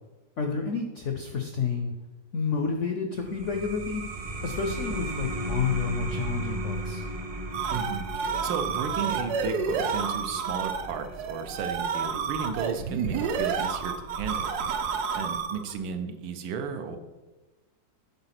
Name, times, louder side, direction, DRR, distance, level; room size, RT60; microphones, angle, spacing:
voice 1, 0.4-1.9 2.3-4.0 4.4-7.0, left 5 dB, 75° left, 4 dB, 0.6 m, -30 dB
sound 1, 3.2-14.3, right 1 dB, 40° right, 0.6 m, -37 dB
sound 2, 7.2-15.8, right 6 dB, 70° right, 1.0 m, -30 dB
voice 2, 7.7-8.1 8.4-14.5 15.1-17.0, right 6 dB, 90° right, 6 dB, 1.5 m, -34 dB
7.8 x 3.9 x 5.8 m, 1.1 s
omnidirectional pair, 2.0 m